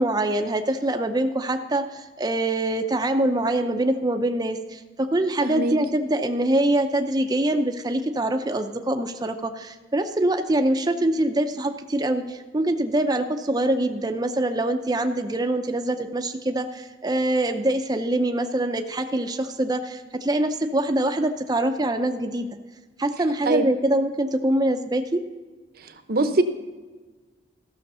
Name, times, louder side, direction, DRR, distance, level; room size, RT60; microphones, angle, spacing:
voice 1, 0.0-22.5 23.0-25.2, right 1 dB, 20° right, 5 dB, 0.5 m, -24 dB
voice 2, 5.4-5.8 23.4-23.7 26.1-26.4, right 2 dB, 55° right, 9 dB, 0.8 m, -22 dB
14.5 x 6.4 x 5.4 m, 1.3 s
head